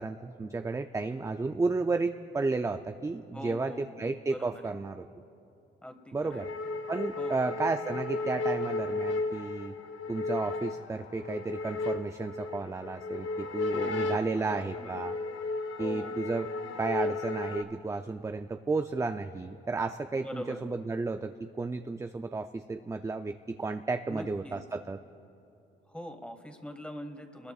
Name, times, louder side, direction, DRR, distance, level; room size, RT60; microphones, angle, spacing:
voice 1, 0.0-5.0 6.1-6.5 6.9-9.7 10.1-15.1 15.8-16.5 16.8-25.0, right 3 dB, 15° right, 7 dB, 0.5 m, -33 dB
voice 2, 3.3-4.0 4.3-4.8 5.8-6.4 7.2-7.5 13.7-15.0 15.8-16.2 20.2-20.7 24.1-24.6 25.9-27.5, equal, 5° left, 5 dB, 1.7 m, -43 dB
sound 1, 6.3-17.6, left 3 dB, 70° left, 0.9 m, -34 dB
28.5 x 21.0 x 2.4 m, 2.7 s
cardioid pair, 90°, 20 cm